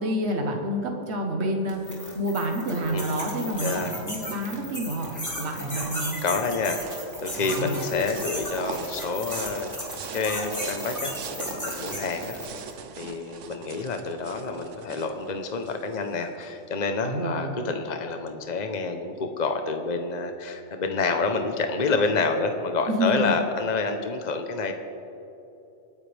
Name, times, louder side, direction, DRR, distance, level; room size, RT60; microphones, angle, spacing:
voice 1, 0.0-6.2 7.4-7.9 17.0-17.5 22.9-23.3, right 1 dB, 60° right, 2 dB, 1.6 m, -29 dB
sound 1, 1.7-12.6, equal, 15° left, 2.7 m, -35 dB
voice 2, 3.6-4.0 5.2-5.4 6.2-9.7 10.1-12.4 13.0-24.7, left 4 dB, 40° left, 5 dB, 1.0 m, -28 dB
sound 2, 5.7-16.5, right 6 dB, 75° right, 1.2 m, -41 dB
27.0 x 9.7 x 3.5 m, 2.9 s
omnidirectional pair, 1.3 m